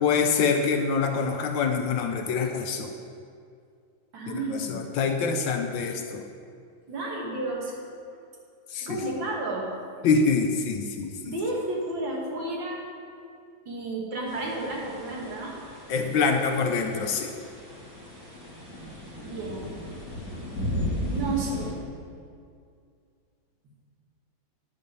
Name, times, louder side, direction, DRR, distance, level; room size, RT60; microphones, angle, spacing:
voice 1, 0.0-2.9 4.3-6.2 8.7-9.0 10.0-11.1 15.9-17.3, left 5 dB, 70° left, 5 dB, 1.3 m, -25 dB
voice 2, 4.1-4.9 6.9-7.7 8.8-9.7 11.2-12.8 13.7-15.6 19.2-19.8 21.1-21.7, right 2 dB, 65° right, -3 dB, 2.4 m, -32 dB
sound 1, 14.3-21.7, left 1 dB, 15° right, 1.4 m, -36 dB
10.0 x 5.3 x 6.8 m, 2.3 s
omnidirectional pair, 2.3 m